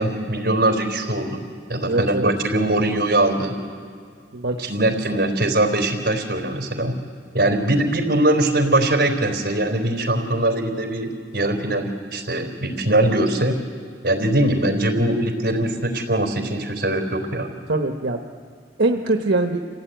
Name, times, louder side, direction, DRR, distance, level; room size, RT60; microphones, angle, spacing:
voice 1, 0.0-1.4 1.7-3.6 4.6-7.0 7.3-13.6 14.0-17.5, right 1 dB, 55° right, 3 dB, 3.9 m, -21 dB
voice 2, 1.8-2.3 4.3-5.2 17.7-18.2 18.8-19.6, right 2 dB, 75° right, 3 dB, 1.1 m, -23 dB
28.0 x 16.5 x 9.2 m, 2.1 s
head